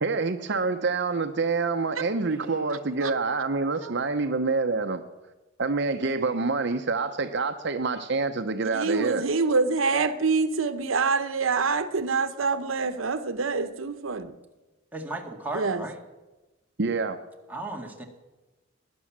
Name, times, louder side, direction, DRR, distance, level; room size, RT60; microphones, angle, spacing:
voice 1, 0.0-5.0 5.6-9.2 16.8-17.2, right 4 dB, 60° right, 7 dB, 0.8 m, -27 dB
voice 2, 8.7-14.3 15.5-15.8, right 4 dB, 85° right, 11 dB, 0.9 m, -26 dB
voice 3, 14.9-16.0 17.5-18.0, right 2 dB, 10° right, 1 dB, 1.9 m, -35 dB
19.0 x 10.5 x 7.4 m, 1.1 s
head